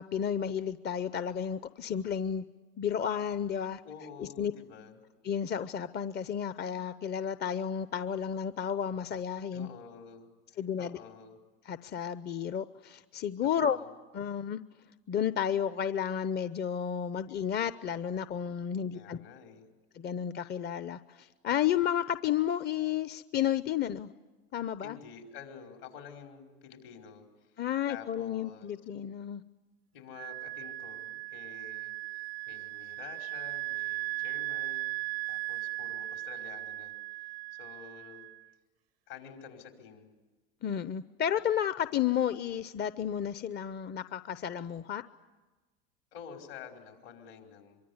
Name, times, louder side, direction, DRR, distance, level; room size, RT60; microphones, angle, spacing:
voice 1, 0.0-2.4 2.8-3.8 4.2-4.5 5.2-9.7 10.6-11.0 11.7-13.8 14.1-14.6 15.1-19.2 20.0-24.1 24.5-25.0 27.6-29.4 40.6-45.0, left 9 dB, 35° left, 13 dB, 0.8 m, -32 dB
voice 2, 3.8-5.0 9.5-11.4 13.4-13.9 18.7-19.7 24.8-27.6 27.9-28.7 29.9-34.9 35.3-37.2 37.5-38.3 39.1-40.1 46.1-47.8, left 7 dB, 70° left, 3 dB, 5.0 m, -49 dB
Wind instrument woodwind instrument, 30.1-38.4, right 20 dB, 80° right, 0.8 m, -38 dB
24.5 x 24.0 x 9.6 m, 1.3 s
hypercardioid pair, 90°, 30 cm